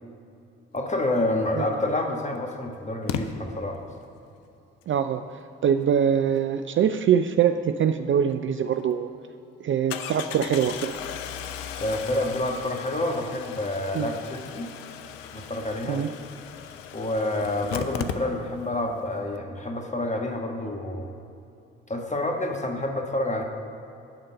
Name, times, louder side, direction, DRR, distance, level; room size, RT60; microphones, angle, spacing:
voice 1, 0.7-3.9 11.8-14.7 15.3-16.0 16.9-21.1 21.9-23.4, left 1 dB, 25° left, 2 dB, 1.4 m, -28 dB
Engine starting, 1.6-1.7 3.1-3.2 8.3-8.4 8.7-8.8 9.9-18.7 19.0-19.1 19.3-19.4, left 8 dB, 80° left, 0.5 m, -36 dB
voice 2, 4.9-9.1 9.6-10.9 13.9-14.1 15.9-16.1, right 8 dB, 40° right, 9 dB, 0.4 m, -23 dB
10.5 x 3.7 x 6.7 m, 2.7 s
hypercardioid pair, 40°, 31 cm